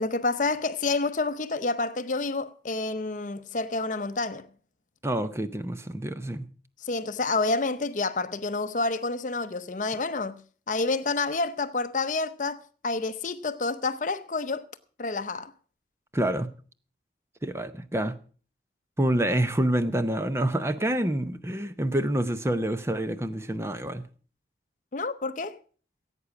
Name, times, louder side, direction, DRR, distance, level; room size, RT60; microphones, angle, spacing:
voice 1, 0.0-4.5 6.8-10.4 10.7-14.7 15.0-15.5 24.9-25.6, left 3 dB, 45° left, 0.7 m, -29 dB
voice 2, 5.0-6.5 16.1-16.5 17.4-18.2 19.0-24.0, right 1 dB, 15° right, 0.7 m, -27 dB
16.5 x 8.4 x 6.0 m
head